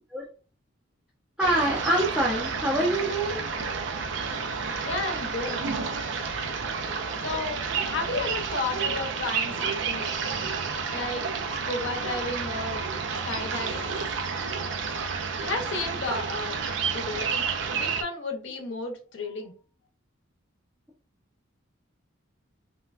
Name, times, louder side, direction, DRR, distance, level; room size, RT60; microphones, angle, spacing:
voice 1, 1.4-3.4 10.0-10.1, right 1 dB, 5° right, -6 dB, 0.5 m, -25 dB
sound 1, 1.4-18.0, right 5 dB, 60° right, 0.4 m, -30 dB
voice 2, 4.8-5.6 7.2-10.4 10.9-11.2 11.5-12.9 13.2-13.8 15.4-16.6 16.9-19.5, left 3 dB, 65° left, 3 dB, 0.7 m, -33 dB
3.3 x 2.1 x 2.4 m, 0.37 s
head